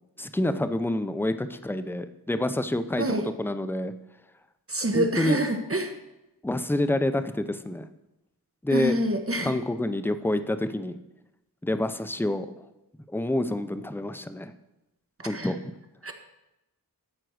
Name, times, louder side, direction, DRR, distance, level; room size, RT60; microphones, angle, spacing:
voice 1, 0.2-3.9 4.9-5.4 6.4-7.8 8.6-9.0 9.4-11.0 11.6-12.5 13.1-14.5 15.2-15.6, left 1 dB, 5° left, 10 dB, 0.6 m, -27 dB
voice 2, 4.7-5.9 8.7-9.5 15.2-15.5 16.0-16.1, right 1 dB, 35° right, 6 dB, 1.1 m, -27 dB
12.5 x 4.5 x 6.3 m, 0.93 s
wide cardioid pair, 50°, 37 cm